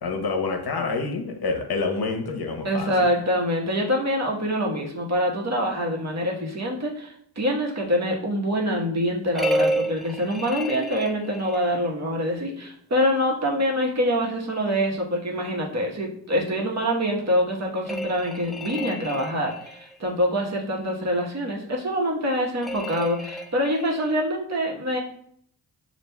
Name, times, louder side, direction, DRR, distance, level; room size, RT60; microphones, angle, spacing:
voice 1, 0.0-2.9, left 4 dB, 60° left, 4 dB, 0.9 m, -27 dB
voice 2, 2.6-25.0, equal, 40° right, -1 dB, 1.1 m, -25 dB
sound 1, 9.3-11.8 17.8-20.0 22.6-24.1, equal, ahead, 0.3 m, -30 dB
6.8 x 2.5 x 2.2 m, 0.68 s
cardioid pair, 55°, 43 cm